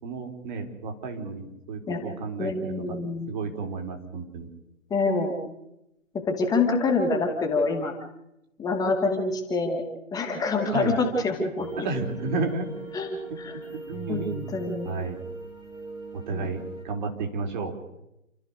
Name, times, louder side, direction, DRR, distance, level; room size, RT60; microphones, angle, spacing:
voice 1, 0.0-2.8 3.3-4.5 10.7-11.0 11.8-12.7 13.3-13.4 13.7-14.6 14.9-15.2 16.1-17.7, right 4 dB, 35° right, 3 dB, 4.0 m, -32 dB
voice 2, 2.4-3.3 4.9-5.3 6.2-7.9 8.6-9.8 10.1-11.9 12.9-13.6 14.1-14.2 14.5-14.9 16.3-16.6, left 3 dB, 10° left, 2 dB, 2.4 m, -26 dB
sound 1, 11.6-16.8, right 3 dB, 10° right, 3.0 m, -40 dB
29.0 x 13.5 x 6.7 m, 0.88 s
figure-of-eight pair, 130°, 39 cm